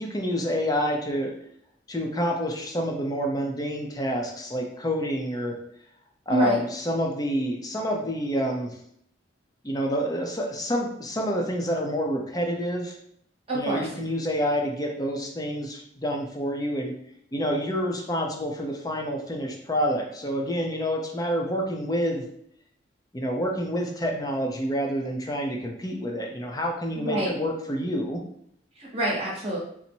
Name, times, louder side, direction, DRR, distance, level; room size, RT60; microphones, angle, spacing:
voice 1, 0.0-1.3 1.9-5.6 6.3-8.7 9.6-13.0 13.5-16.9 17.3-22.2 23.1-28.2, equal, 20° left, 1 dB, 0.6 m, -28 dB
voice 2, 6.3-6.6 13.5-13.9 27.0-27.4 28.8-29.6, right 1 dB, 30° right, -5 dB, 1.0 m, -26 dB
4.0 x 2.1 x 4.4 m, 0.70 s
head